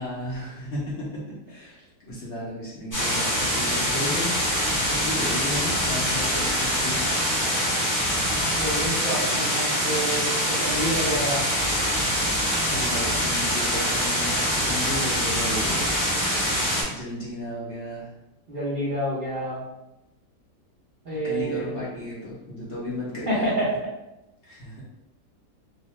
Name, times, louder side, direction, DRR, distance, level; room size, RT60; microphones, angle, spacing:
voice 1, 0.0-4.4 4.9-7.0 12.7-15.8 16.9-18.1 21.1-23.6 24.4-24.8, left 1 dB, 60° left, -7 dB, 0.8 m, -34 dB
sound 1, 2.9-16.8, equal, 20° left, 0.5 m, -24 dB
voice 2, 8.6-11.4 18.5-19.6 21.0-21.7 23.3-23.7, right 1 dB, 60° right, -8 dB, 0.5 m, -28 dB
2.7 x 2.0 x 3.0 m, 0.94 s
omnidirectional pair, 1.7 m